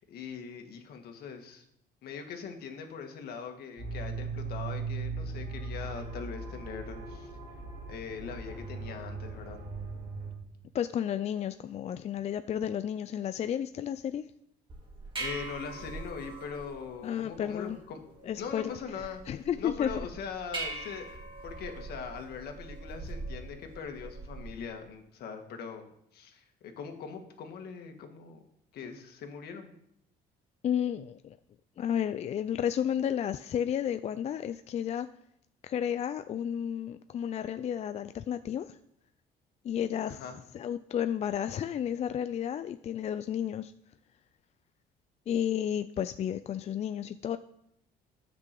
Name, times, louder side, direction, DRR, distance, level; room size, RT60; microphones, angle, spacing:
voice 1, 0.0-1.6 2.0-7.3 7.9-9.6 15.2-18.0 18.4-21.1 21.4-28.4 28.7-29.7 40.1-40.4, left 6 dB, 70° left, 5 dB, 1.8 m, -41 dB
sound 1, 3.8-10.4, right 4 dB, 60° right, 3.1 m, -38 dB
voice 2, 10.7-14.2 17.0-17.8 18.2-19.9 30.6-31.4 31.8-35.1 35.6-38.8 39.6-40.2 40.5-43.7 45.3-47.4, left 9 dB, 40° left, 11 dB, 0.4 m, -32 dB
sound 2, 14.7-24.7, right 2 dB, 30° right, 2.3 m, -42 dB
9.8 x 6.1 x 7.5 m, 0.75 s
cardioid pair, 110°, 17 cm